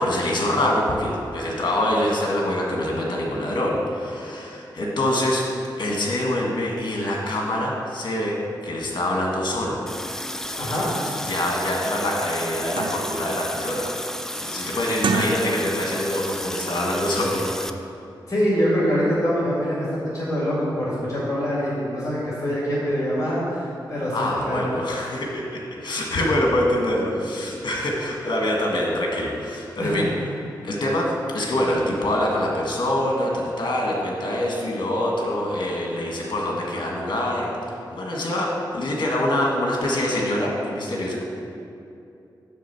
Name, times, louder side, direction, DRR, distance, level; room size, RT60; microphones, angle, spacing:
voice 1, 0.0-5.4 5.8-9.8 10.6-13.9 14.3-17.8 24.1-30.1 30.6-41.2, left 1 dB, 65° left, -2 dB, 1.7 m, -25 dB
Water tap faucet, 9.9-17.7, left 1 dB, 5° left, 0.5 m, -33 dB
sound 1, 10.4-10.5 10.7-10.9 11.5-11.6 12.0-13.3 13.7-14.1 14.9-15.9 16.2-16.4, right 5 dB, 75° right, 0.5 m, -30 dB
voice 2, 10.6-10.9 18.3-24.7 29.8-30.0, equal, 45° left, -8 dB, 2.1 m, -24 dB
9.2 x 3.5 x 7.0 m, 2.6 s
cardioid pair, 60°, 8 cm